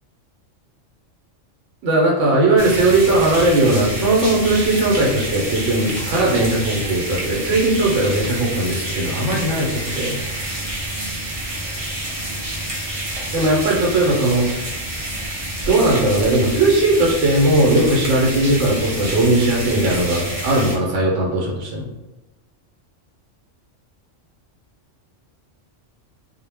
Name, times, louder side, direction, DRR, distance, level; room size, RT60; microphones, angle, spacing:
voice 1, 1.8-10.2 13.3-14.6 15.7-21.9, right 2 dB, 75° right, -2 dB, 0.9 m, -18 dB
sound 1, 2.6-20.8, right 1 dB, 50° right, 0.4 m, -28 dB
2.1 x 2.0 x 3.2 m, 1.1 s
omnidirectional pair, 1.3 m